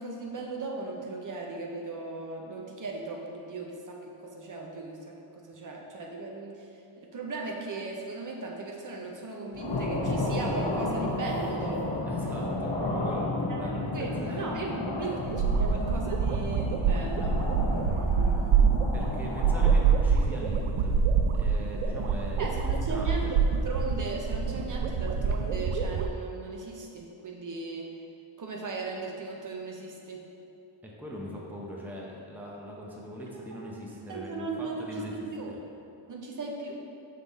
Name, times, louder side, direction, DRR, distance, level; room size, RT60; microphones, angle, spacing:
voice 1, 0.0-6.7 7.0-12.0 13.5-18.7 22.4-23.4 23.6-27.9 28.4-30.3 33.6-33.7 34.1-35.5 36.1-36.8, right 3 dB, 40° right, 0 dB, 0.7 m, -37 dB
sound 1, 9.5-19.8, left 2 dB, 55° left, 1.2 m, -32 dB
voice 2, 12.0-14.5 14.7-15.2 18.9-21.0 21.3-23.3 30.8-35.1, equal, 5° right, -3 dB, 0.7 m, -41 dB
sound 2, 15.2-26.1, right 5 dB, 85° right, 0.6 m, -26 dB
6.5 x 3.8 x 4.0 m, 2.7 s
wide cardioid pair, 130°, 50 cm